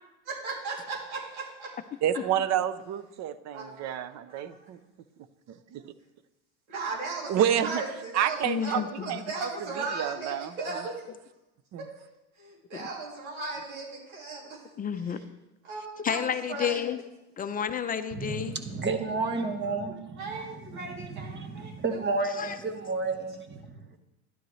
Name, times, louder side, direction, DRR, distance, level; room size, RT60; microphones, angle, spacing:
voice 1, 0.2-1.7 3.5-3.7 4.3-4.7 6.7-11.0 12.0-12.1 12.4-14.6 15.1-15.2 15.7-16.2 16.5-16.8 20.2-22.5, right 3 dB, 90° right, -5 dB, 2.9 m, -37 dB
voice 2, 2.0-4.8 5.5-5.9 7.3-7.8 8.1-10.8 11.7-11.9, right 10 dB, 40° right, 14 dB, 0.7 m, -29 dB
voice 3, 8.4-9.2 12.7-12.8 14.8-15.2 16.0-17.0 17.4-18.6 22.3-22.6, left 8 dB, 20° left, 10 dB, 0.5 m, -31 dB
voice 4, 18.1-20.4 20.7-24.0, right 3 dB, 25° right, 7 dB, 1.2 m, -32 dB
11.5 x 11.0 x 3.2 m, 0.99 s
supercardioid pair, 115°, 41 cm